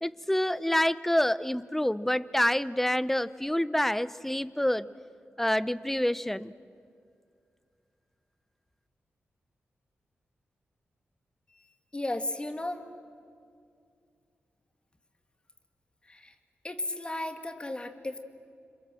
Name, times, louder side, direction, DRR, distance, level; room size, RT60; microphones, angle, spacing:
voice 1, 0.0-4.9 5.4-6.5, left 1 dB, 5° left, 17 dB, 0.7 m, -27 dB
voice 2, 11.9-12.9 16.0-16.3 16.6-18.2, left 1 dB, 25° left, 7 dB, 2.3 m, -34 dB
29.5 x 26.5 x 7.7 m, 2.3 s
cardioid pair, 80°, 4 cm